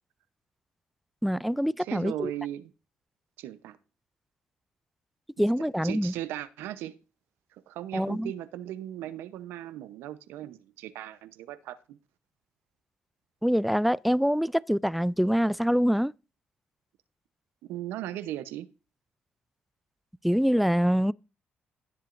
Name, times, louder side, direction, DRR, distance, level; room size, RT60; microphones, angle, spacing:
voice 1, 1.2-2.3 5.4-6.1 7.9-8.3 13.4-16.1 20.2-21.1, equal, ahead, 0.4 m, -25 dB
voice 2, 1.8-2.7 3.4-3.8 5.4-7.0 7.5-12.0 17.6-18.7, right 13 dB, 90° right, 0.8 m, -38 dB
17.0 x 7.5 x 2.6 m
supercardioid pair, 65°, 4 cm